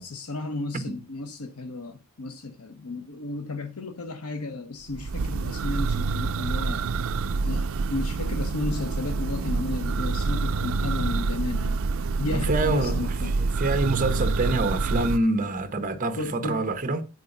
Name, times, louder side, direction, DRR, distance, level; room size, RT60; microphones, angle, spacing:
voice 1, 0.0-6.9 7.4-11.8 12.2-13.3 16.1-16.7, left 2 dB, 85° left, 0.9 m, -33 dB
Church bell, 4.9-15.2, right 4 dB, 65° right, 0.5 m, -27 dB
voice 2, 12.3-17.0, right 2 dB, 35° right, 1.2 m, -26 dB
9.5 x 4.9 x 5.4 m
head